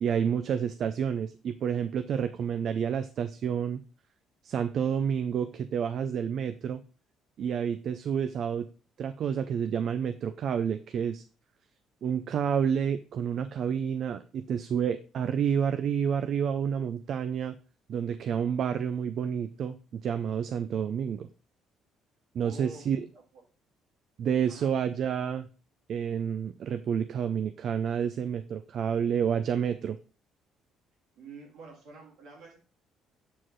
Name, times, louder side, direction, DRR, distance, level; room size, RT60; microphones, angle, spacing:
voice 1, 0.0-3.8 4.4-6.8 7.4-8.7 9.0-11.2 12.0-17.6 17.9-21.3 22.3-23.1 24.2-25.5 25.9-30.0, right 7 dB, 60° right, 10 dB, 0.4 m, -29 dB
voice 2, 22.4-23.4 24.5-24.7 31.2-32.6, right 3 dB, 80° right, 0 dB, 2.2 m, -48 dB
7.5 x 4.4 x 3.1 m, 0.36 s
cardioid pair, 85°, 0 cm